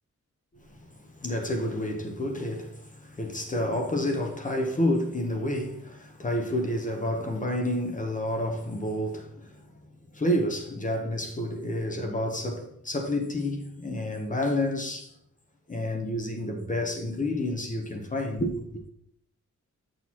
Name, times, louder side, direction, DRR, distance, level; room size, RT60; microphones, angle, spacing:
voice 1, 0.7-9.6 10.1-15.1 15.7-18.6, left 1 dB, 25° left, 0.8 m, -29 dB
7.8 x 6.3 x 2.9 m
wide cardioid pair, 155°, 31 cm